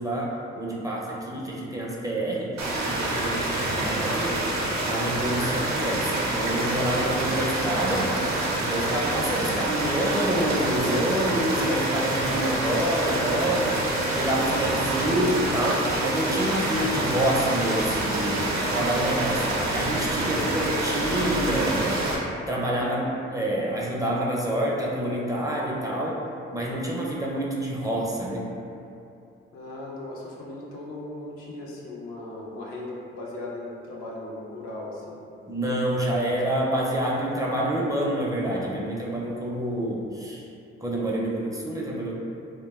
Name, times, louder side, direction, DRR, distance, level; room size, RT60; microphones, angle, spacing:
voice 1, 0.0-4.4 4.8-8.1 8.7-13.9 14.1-22.0 22.5-26.2 26.5-28.5 35.5-40.5 40.8-42.2, right 1 dB, 10° right, -5 dB, 0.5 m, -27 dB
sound 1, 2.6-22.2, right 1 dB, 70° right, 0.5 m, -27 dB
voice 2, 20.2-21.0 29.5-35.2, left 2 dB, 75° left, -5 dB, 0.5 m, -38 dB
2.6 x 2.1 x 2.3 m, 2.6 s
hypercardioid pair, 40°, 29 cm